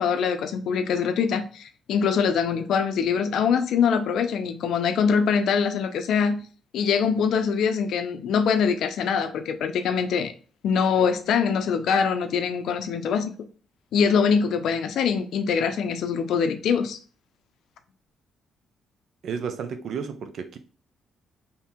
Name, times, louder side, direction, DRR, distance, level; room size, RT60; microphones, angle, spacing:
voice 1, 0.0-6.4 6.7-10.3 10.6-13.3 13.9-17.0, left 6 dB, 75° left, 0.5 m, -23 dB
voice 2, 19.2-20.6, right 6 dB, 65° right, 0.5 m, -32 dB
2.8 x 2.7 x 3.6 m
cardioid pair, 90°, 0 cm